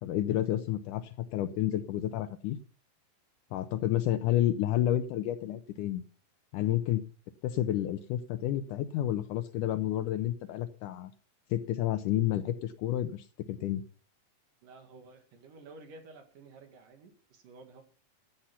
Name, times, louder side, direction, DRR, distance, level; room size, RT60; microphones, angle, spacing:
voice 1, 0.0-2.6 3.5-6.0 6.5-7.0 7.4-11.1 11.5-13.8, left 12 dB, 75° left, 11 dB, 2.0 m, -30 dB
voice 2, 14.6-17.8, right 3 dB, 65° right, 4 dB, 3.7 m, -52 dB
14.5 x 8.0 x 5.6 m, 0.43 s
omnidirectional pair, 4.1 m